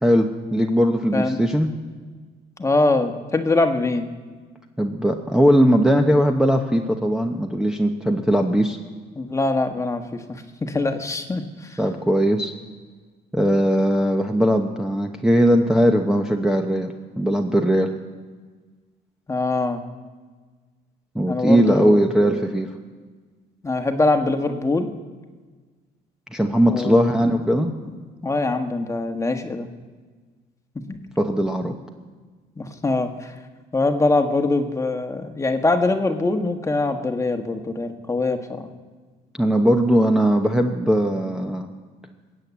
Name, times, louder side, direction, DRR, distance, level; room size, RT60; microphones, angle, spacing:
voice 1, 0.0-1.7 4.8-8.8 11.8-12.5 13.3-17.9 21.1-22.7 26.3-27.7 31.2-31.7 39.4-41.7, equal, 5° right, 3 dB, 0.9 m, -19 dB
voice 2, 2.6-4.1 9.2-11.8 19.3-19.8 21.3-22.4 23.6-24.9 26.7-27.1 27.5-27.6 28.2-29.7 32.6-33.3 33.7-38.7, left 2 dB, 20° left, 6 dB, 1.3 m, -23 dB
20.5 x 7.8 x 8.5 m, 1.4 s
cardioid pair, 110°, 17 cm